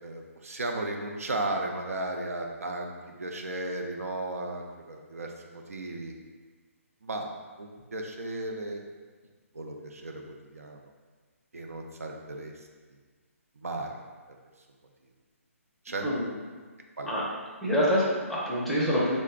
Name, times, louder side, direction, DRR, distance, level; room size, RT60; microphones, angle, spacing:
voice 1, 0.0-2.9 3.2-6.2 7.0-7.3 7.6-8.8 9.5-10.8 11.5-12.5 13.6-14.0 15.8-16.1 17.0-17.1, right 2 dB, 75° right, 2 dB, 0.5 m, -35 dB
voice 2, 16.0-16.3 17.0-17.2 17.6-19.2, equal, 5° left, -7 dB, 0.5 m, -26 dB
3.8 x 2.1 x 3.4 m, 1.5 s
figure-of-eight pair, 140°, 8 cm